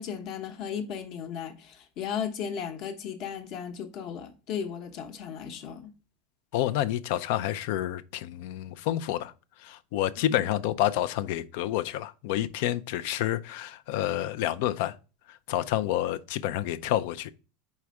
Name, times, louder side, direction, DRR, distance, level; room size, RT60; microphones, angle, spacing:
voice 1, 0.0-5.9 10.3-10.4, left 7 dB, 40° left, 0.9 m, -35 dB
voice 2, 6.5-9.3 9.6-14.9 15.3-17.3, left 13 dB, 60° left, 0.4 m, -29 dB
4.8 x 4.3 x 4.7 m
supercardioid pair, 155°, 0 cm